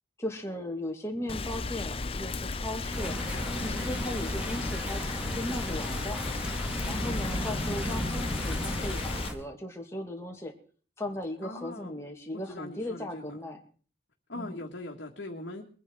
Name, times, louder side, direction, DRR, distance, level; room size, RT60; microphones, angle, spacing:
voice 1, 0.2-3.2 3.7-6.2 6.9-10.5 11.0-13.6 14.3-14.6, left 1 dB, 15° left, 2 dB, 2.2 m, -37 dB
Rain, 1.3-9.3, left 3 dB, 30° left, 0.6 m, -34 dB
sound 1, 2.9-9.3, equal, 5° right, 2.3 m, -35 dB
voice 2, 3.6-3.9 6.8-7.2 11.4-12.0 12.3-13.2 14.3-15.6, left 1 dB, 65° left, -1 dB, 1.7 m, -41 dB
22.0 x 9.8 x 4.6 m, 0.42 s
head